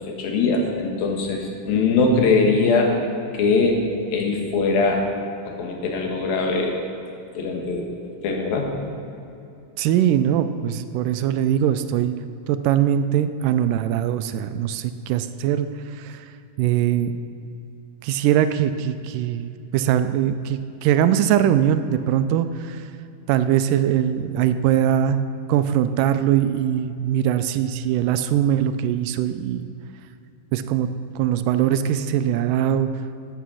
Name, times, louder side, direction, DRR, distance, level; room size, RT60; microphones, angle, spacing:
voice 1, 0.1-2.9 3.3-3.8 4.1-5.0 5.6-6.8 7.4-7.9 8.2-8.7, left 3 dB, 90° left, 1 dB, 3.2 m, -21 dB
voice 2, 9.8-12.1 12.5-16.3 16.6-17.2 18.0-22.9 23.3-25.2 25.5-29.7 30.5-30.9 31.2-32.9, right 10 dB, 80° right, 10 dB, 2.0 m, -21 dB
12.5 x 8.2 x 6.3 m, 2.7 s
omnidirectional pair, 4.0 m